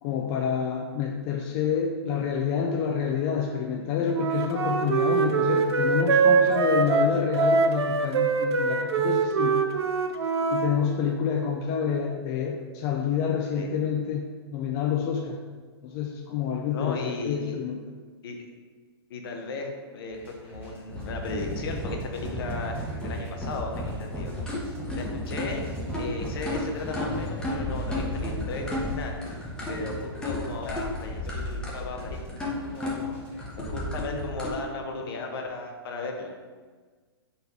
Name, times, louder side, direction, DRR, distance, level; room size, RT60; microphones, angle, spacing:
voice 1, 0.0-9.7 10.5-15.4 15.8-17.8, left 7 dB, 35° left, 1 dB, 0.4 m, -28 dB
Wind instrument woodwind instrument, 4.1-10.7, right 5 dB, 80° right, 0.4 m, -23 dB
voice 2, 16.7-17.6 18.2-18.4 19.1-24.3 25.0-25.6 26.0-29.1 29.7-33.2 33.6-36.3, left 3 dB, 60° left, 2 dB, 0.8 m, -36 dB
sound 1, 20.1-33.5, equal, 15° right, 1.3 m, -45 dB
sound 2, 20.9-34.5, left 1 dB, 5° left, 0.9 m, -33 dB
4.0 x 2.6 x 4.6 m, 1.4 s
hypercardioid pair, 125°, 14 cm